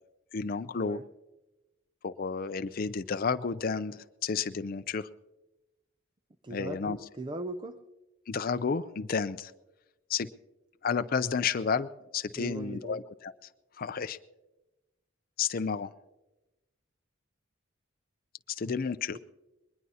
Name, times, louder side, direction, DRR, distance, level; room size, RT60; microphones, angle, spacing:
voice 1, 0.3-1.0 2.0-5.1 6.5-7.0 8.3-9.5 10.1-10.3 10.8-13.3 13.8-14.2 15.4-15.9 18.5-19.2, left 5 dB, 45° left, 10 dB, 0.4 m, -31 dB
voice 2, 6.4-7.8 12.4-13.0 19.1-19.2, right 2 dB, 25° right, 10 dB, 0.5 m, -39 dB
21.0 x 20.5 x 2.8 m, 1.0 s
head